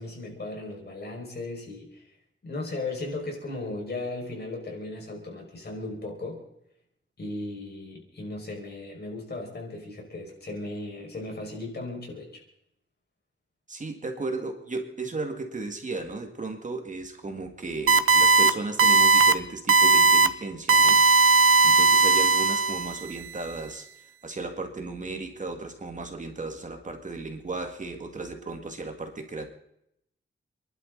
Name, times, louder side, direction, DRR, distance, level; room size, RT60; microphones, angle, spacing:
voice 1, 0.0-2.1 2.4-6.4 7.2-12.4, left 2 dB, 50° left, 0 dB, 5.6 m, -36 dB
voice 2, 13.7-21.0 21.6-23.9 24.2-29.5, right 3 dB, 35° right, 4 dB, 2.1 m, -35 dB
sound 1, 17.9-18.5 18.8-19.3 19.7-20.3 20.7-23.0, right 4 dB, 90° right, 0.9 m, -18 dB
29.0 x 11.5 x 4.0 m, 0.76 s
wide cardioid pair, 135°, 21 cm